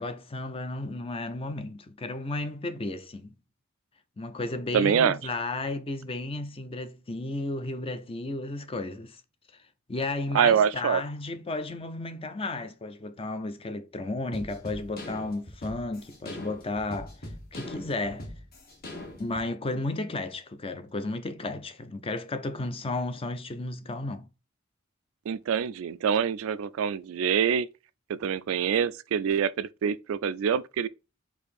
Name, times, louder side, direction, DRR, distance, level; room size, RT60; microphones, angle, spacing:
voice 1, 0.0-3.3 4.2-9.2 9.9-17.1 17.5-18.3 19.2-24.3, left 2 dB, 25° left, 0.5 m, -33 dB
voice 2, 4.7-5.2 10.3-11.0 25.3-27.7 28.1-30.9, right 7 dB, 75° right, 0.3 m, -25 dB
sound 1, 14.3-19.5, left 1 dB, 45° left, 1.2 m, -41 dB
4.7 x 2.7 x 4.2 m
head